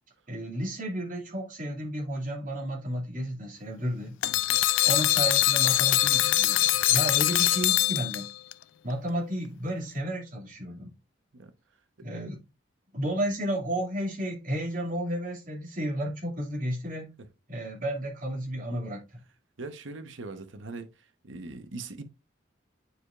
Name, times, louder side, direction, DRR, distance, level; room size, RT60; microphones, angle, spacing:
voice 1, 0.3-4.1 4.8-8.3 8.8-10.9 12.0-12.4 12.9-17.1 17.5-19.0, right 1 dB, 45° right, 2.4 m, -32 dB
sound 1, 4.2-8.5, left 15 dB, 90° left, 0.4 m, -23 dB
voice 2, 19.6-20.9 21.3-22.0, right 3 dB, 85° right, 0.9 m, -40 dB
9.4 x 4.8 x 2.4 m
head